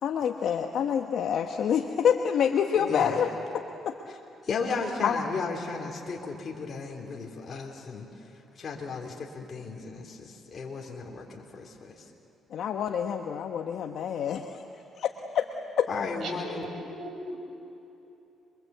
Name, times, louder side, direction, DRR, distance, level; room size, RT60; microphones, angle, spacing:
voice 1, 0.0-3.9 5.0-5.2 12.5-14.6 15.0-15.4 15.8-15.9, left 8 dB, 70° left, 4 dB, 1.1 m, -27 dB
voice 2, 2.7-3.2 4.4-8.1 8.6-11.9 15.9-16.7, left 4 dB, 45° left, 0 dB, 3.2 m, -34 dB
voice 3, 16.2-17.4, right 1 dB, 70° right, 1 dB, 6.9 m, -38 dB
27.5 x 23.5 x 8.0 m, 2.9 s
cardioid pair, 90°, 0 cm